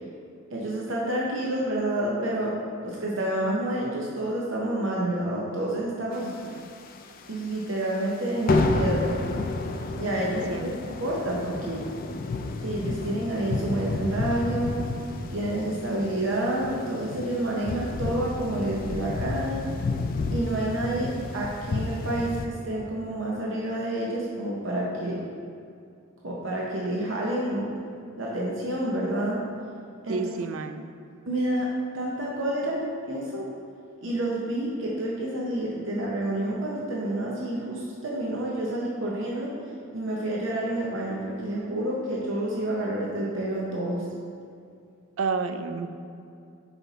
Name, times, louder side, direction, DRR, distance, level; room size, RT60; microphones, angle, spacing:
voice 1, 0.5-2.5 2.8-6.3 7.3-9.1 9.9-10.7 11.0-11.8 12.6-14.8 15.3-19.6 20.3-25.2 26.2-27.7 28.2-29.4 30.0-30.2 31.3-31.7 31.9-32.8 33.1-33.5 34.0-39.5 39.9-44.0, right 1 dB, 65° right, -4 dB, 0.8 m, -29 dB
voice 2, 6.2-6.7 10.2-10.7 30.1-30.8 45.2-45.9, right 4 dB, 80° right, 9 dB, 0.4 m, -31 dB
sound 1, 6.3-7.3 7.6-7.7 8.0-8.2 8.5-22.5, left 3 dB, 45° left, 0.3 m, -31 dB
5.7 x 4.3 x 4.0 m, 2.5 s
head